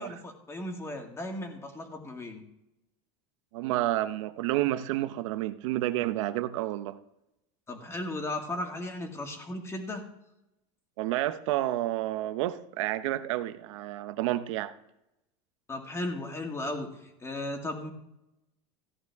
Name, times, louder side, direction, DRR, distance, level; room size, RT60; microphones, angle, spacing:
voice 1, 0.0-2.4 7.7-10.1 15.7-17.9, left 1 dB, 15° left, 2.1 m, -36 dB
voice 2, 3.5-7.0 11.0-14.7, right 15 dB, 80° right, 0.8 m, -30 dB
15.0 x 9.5 x 3.5 m
supercardioid pair, 125°, 16 cm